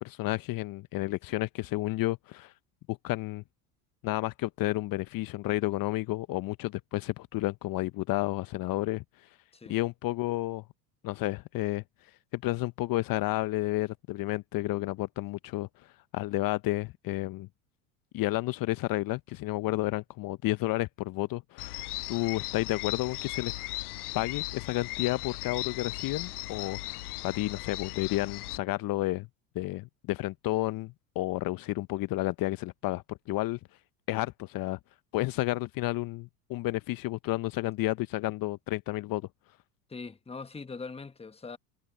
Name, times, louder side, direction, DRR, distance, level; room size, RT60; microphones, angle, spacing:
voice 1, 0.0-2.5 2.9-3.4 4.0-9.0 9.7-10.6 11.0-11.8 12.3-17.5 18.1-23.5 24.1-27.0 27.2-29.3 29.5-33.6 34.1-34.8 35.1-39.3, left 18 dB, 45° left, 0.9 m, -31 dB
sound 1, 21.6-28.6, left 20 dB, 75° left, 0.8 m, -37 dB
voice 2, 39.9-41.6, left 4 dB, 15° left, 1.3 m, -41 dB
hypercardioid pair, 75°, 46 cm